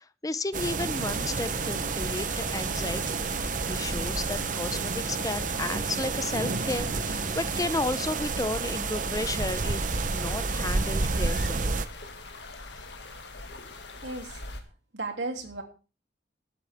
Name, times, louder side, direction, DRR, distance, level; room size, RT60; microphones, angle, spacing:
voice 1, 0.0-3.2 3.7-11.7, left 2 dB, 20° left, 15 dB, 0.6 m, -33 dB
sound 1, 0.5-11.9, right 4 dB, 45° right, 0.8 m, -30 dB
sound 2, 0.9-14.6, left 2 dB, 75° left, 2.1 m, -41 dB
sound 3, 1.8-8.4, left 1 dB, 40° left, 1.2 m, -44 dB
voice 2, 14.0-14.4 14.9-15.6, right 3 dB, 75° right, 1 dB, 3.0 m, -34 dB
21.5 x 8.3 x 3.5 m, 0.33 s
head